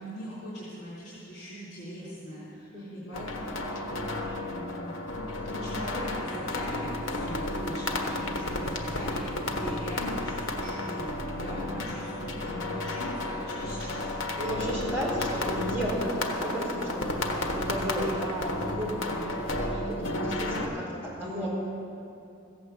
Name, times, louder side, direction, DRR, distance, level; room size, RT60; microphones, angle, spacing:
voice 1, 0.0-3.7 4.4-14.1 14.6-14.7 15.3-15.4 19.8-20.2, equal, 60° left, -8 dB, 3.3 m, -41 dB
voice 2, 2.7-3.1 11.7-11.8 12.4-12.7 14.4-21.5, equal, 10° right, -7 dB, 4.1 m, -34 dB
sound 1, 3.1-20.7, left 2 dB, 75° left, 1.3 m, -32 dB
15.0 x 8.0 x 8.0 m, 2.6 s
head